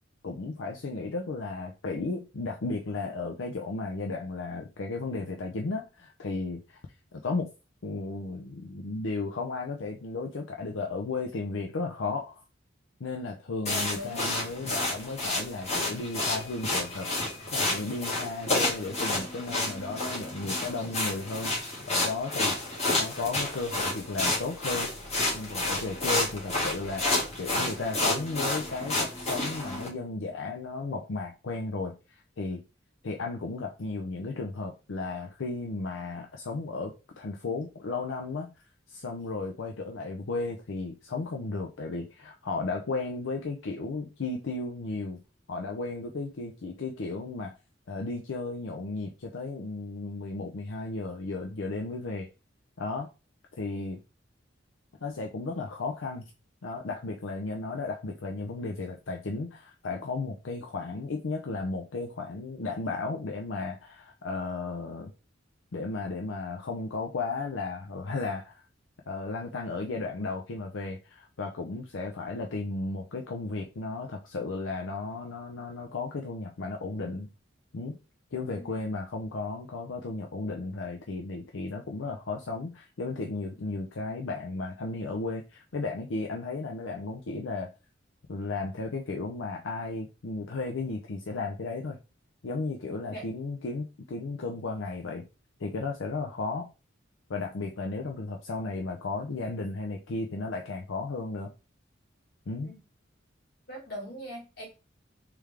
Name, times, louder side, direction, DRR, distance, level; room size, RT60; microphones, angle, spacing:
voice 1, 0.2-6.8 7.1-7.5 7.8-12.4 13.0-17.1 17.5-21.5 21.9-24.9 25.3-32.6 33.0-38.5 38.9-45.2 45.5-47.5 47.9-52.3 52.8-53.1 53.5-54.0 55.0-56.3 56.6-65.1 65.7-68.6 69.1-77.3 77.7-78.0 78.3-87.7 88.3-92.0 92.4-95.3 95.6-96.7 97.3-101.5 102.5-102.7, left 3 dB, 90° left, 0.6 m, -34 dB
voice 2, 13.6-14.3 78.5-78.9 93.1-93.3 102.6-102.8 103.7-104.7, equal, 60° left, 2.1 m, -41 dB
sound 1, 13.7-29.9, left 2 dB, 35° left, 1.8 m, -30 dB
3.5 x 3.4 x 3.3 m
head